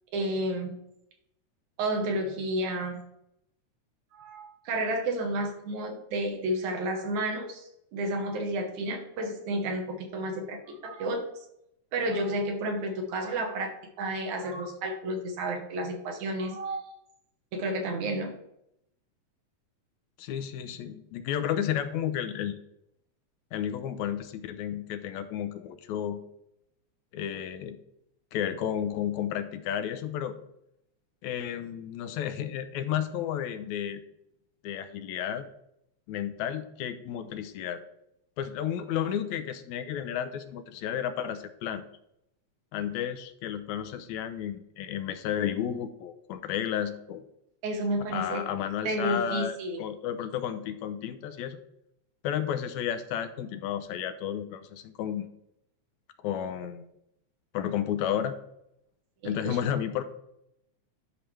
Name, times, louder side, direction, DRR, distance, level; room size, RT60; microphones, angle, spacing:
voice 1, 0.1-0.7 1.8-3.0 4.1-7.6 7.9-11.2 11.9-13.7 14.0-16.9 17.5-18.3 47.6-48.4 48.8-49.8 59.2-59.6, right 1 dB, 80° right, 3 dB, 2.7 m, -31 dB
voice 2, 20.2-22.6 23.5-26.2 27.1-27.8 28.3-30.4 31.2-34.0 34.6-35.5 36.1-37.8 38.4-41.8 42.7-47.2 48.1-51.6 52.2-55.3 56.2-56.9 57.5-58.4 59.2-60.0, left 9 dB, 85° left, 10 dB, 1.9 m, -32 dB
11.0 x 5.8 x 3.2 m, 0.79 s
omnidirectional pair, 3.4 m